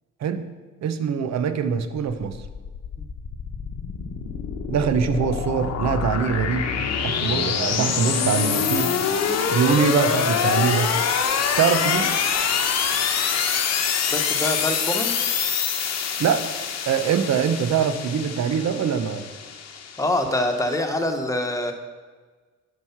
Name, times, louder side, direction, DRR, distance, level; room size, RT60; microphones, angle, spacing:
voice 1, 0.8-2.4 4.7-6.7 7.0-8.9 9.5-10.9 11.6-12.1 16.2-16.4 16.9-19.3, right 7 dB, 60° right, 10 dB, 0.8 m, -23 dB
sound 1, 2.3-20.7, left 6 dB, 60° left, 1.0 m, -25 dB
voice 2, 14.1-15.3 20.0-21.7, left 1 dB, 10° left, 4 dB, 1.1 m, -25 dB
10.5 x 4.8 x 5.8 m, 1.4 s
cardioid pair, 90°, 30 cm